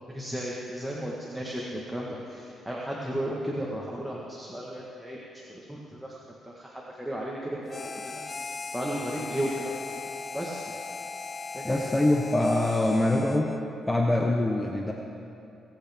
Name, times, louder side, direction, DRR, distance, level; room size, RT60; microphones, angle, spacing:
voice 1, 0.1-5.2 5.5-9.7 10.3-10.7 11.5-11.7, equal, 5° right, -4 dB, 1.4 m, -34 dB
Harmonica, 7.7-13.7, left 4 dB, 35° left, 0.5 m, -38 dB
voice 2, 11.6-13.5 13.9-14.9, left 1 dB, 15° left, 1 dB, 0.9 m, -24 dB
24.0 x 8.1 x 3.5 m, 2.8 s
cardioid pair, 90°, 0 cm